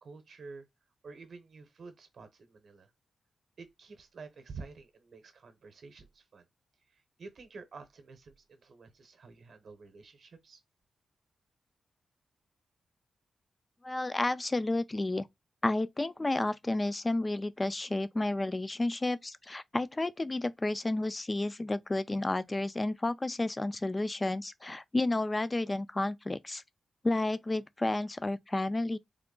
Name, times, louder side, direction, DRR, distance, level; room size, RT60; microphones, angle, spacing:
voice 1, 0.0-0.7 1.0-2.9 3.6-6.4 6.9-10.6, right 4 dB, 60° right, 0.8 m, -49 dB
voice 2, 13.8-15.3 15.6-26.6 27.0-29.0, left 2 dB, 20° left, 0.3 m, -31 dB
3.5 x 2.0 x 3.7 m
wide cardioid pair, 105°, 0 cm